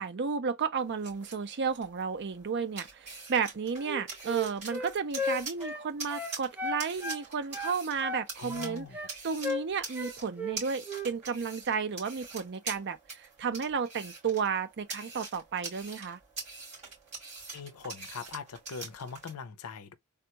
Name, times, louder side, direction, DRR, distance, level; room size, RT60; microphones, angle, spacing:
voice 1, 0.0-8.9 9.2-16.2, right 5 dB, 50° right, 0.5 m, -33 dB
sound 1, 0.8-19.3, right 4 dB, 30° right, 2.0 m, -45 dB
Wind instrument woodwind instrument, 3.8-7.2 7.5-9.1 9.4-9.7 9.9-10.6 10.9-11.1, left 1 dB, 5° right, 0.6 m, -35 dB
voice 2, 8.4-9.0 17.5-19.9, left 5 dB, 90° left, 0.5 m, -42 dB
3.5 x 2.2 x 2.8 m
head